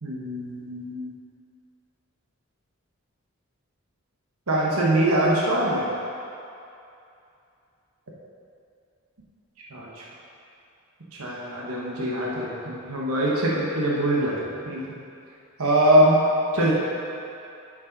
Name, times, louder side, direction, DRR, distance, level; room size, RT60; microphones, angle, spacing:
voice 1, 0.0-1.1 4.5-5.9 9.7-10.0 11.2-14.4 14.6-14.8 15.6-16.2 16.5-16.7, right 1 dB, 75° right, -4 dB, 1.2 m, -23 dB
10.5 x 5.3 x 4.1 m, 2.7 s
head